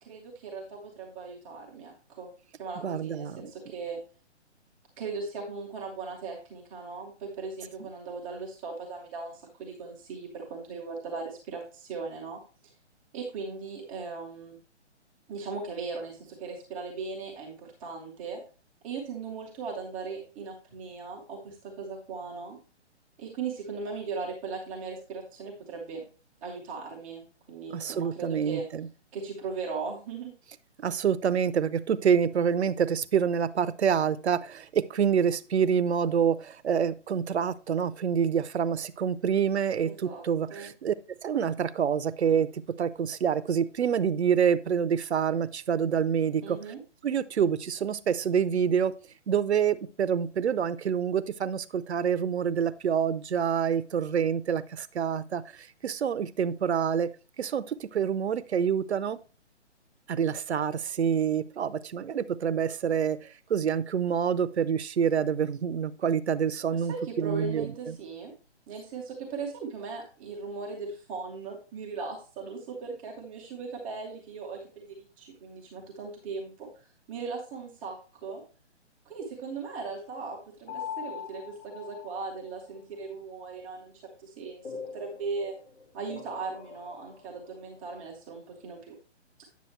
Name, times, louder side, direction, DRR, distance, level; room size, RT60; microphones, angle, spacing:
voice 1, 0.0-2.3 2.5-4.0 5.0-12.4 13.1-14.6 15.3-18.4 18.8-22.6 23.2-26.0 26.4-28.7 29.1-30.3 39.8-40.2 40.5-40.7 46.4-46.8 66.7-68.3 68.7-76.7 77.1-78.0 78.2-78.4 79.0-85.5 85.9-88.9, right 4 dB, 5° right, -11 dB, 0.4 m, -38 dB
voice 2, 2.8-3.4 27.7-28.9 30.8-40.9 41.2-46.6 47.0-48.9 49.3-57.1 57.4-59.2 60.1-68.0, right 7 dB, 65° right, 15 dB, 0.7 m, -27 dB
sound 1, 80.7-82.5 84.6-87.4, left 7 dB, 65° left, 3.0 m, -42 dB
9.4 x 6.7 x 3.1 m, 0.35 s
figure-of-eight pair, 140°, 35 cm